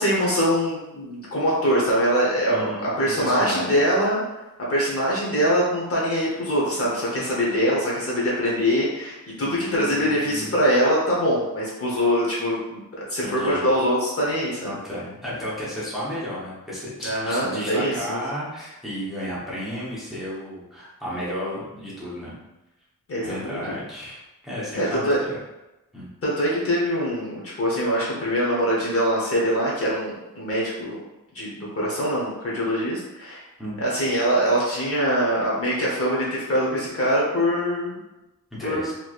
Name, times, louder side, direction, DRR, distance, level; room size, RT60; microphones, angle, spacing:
voice 1, 0.0-4.2 4.7-12.8 13.1-14.7 17.0-18.2 23.1-23.7 24.8-25.2 26.2-31.0 31.3-33.4 33.8-38.0 38.6-38.9, equal, 40° left, -5 dB, 0.9 m, -23 dB
voice 2, 2.5-2.9 3.2-3.8 9.4-10.5 13.2-13.6 14.6-22.3 23.2-25.4 25.9-26.1 33.6-33.8 38.6-38.9, equal, ahead, -8 dB, 0.9 m, -33 dB
3.1 x 3.0 x 2.4 m, 0.97 s
wide cardioid pair, 150°, 34 cm